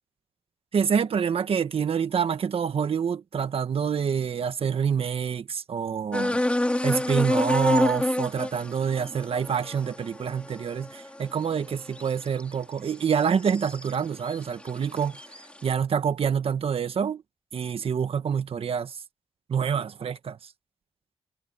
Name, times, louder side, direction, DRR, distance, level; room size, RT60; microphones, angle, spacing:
voice 1, 0.7-6.4 6.8-15.2 15.6-17.2 17.5-18.9 19.5-20.4, right 7 dB, 70° right, 1.4 m, -27 dB
sound 1, 6.1-12.5 13.1-13.9 14.3-15.4, left 1 dB, 10° left, 2.4 m, -28 dB
cardioid pair, 85°, 10 cm